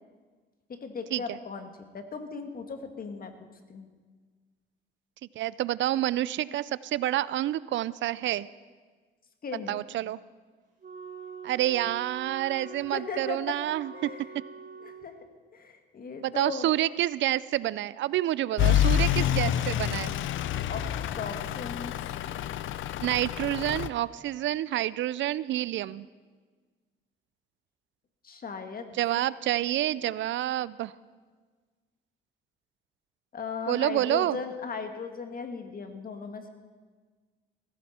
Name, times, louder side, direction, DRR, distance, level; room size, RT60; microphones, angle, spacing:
voice 1, 0.7-3.3 3.7-3.9 9.4-9.8 12.7-14.3 14.8-15.2 15.5-16.7 20.7-22.0 28.2-28.9 33.3-36.5, left 4 dB, 45° left, 6 dB, 1.8 m, -37 dB
voice 2, 5.4-8.5 9.7-10.2 11.4-14.4 16.2-20.1 23.0-26.1 28.9-30.9 33.7-34.4, right 13 dB, 70° right, 19 dB, 0.4 m, -28 dB
Wind instrument woodwind instrument, 10.8-15.1, right 4 dB, 45° right, 4.6 m, -45 dB
Truck / Idling, 18.6-23.9, left 11 dB, 75° left, 0.6 m, -28 dB
17.5 x 15.5 x 4.3 m, 1.4 s
cardioid pair, 90°, 20 cm